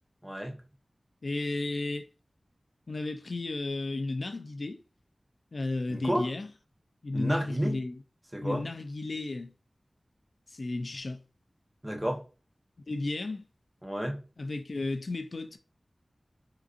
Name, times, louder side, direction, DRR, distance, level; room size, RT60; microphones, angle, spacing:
voice 1, 0.2-0.6 5.9-6.3 7.1-7.8 8.3-8.7 11.8-12.2 13.8-14.2, equal, 15° right, 0.8 m, -30 dB
voice 2, 1.2-2.1 2.9-4.8 5.5-6.5 7.0-8.0 8.4-9.5 10.5-11.2 12.9-13.5 14.4-15.6, left 2 dB, 70° left, 0.3 m, -33 dB
3.7 x 2.5 x 2.4 m
cardioid pair, 40°, 0 cm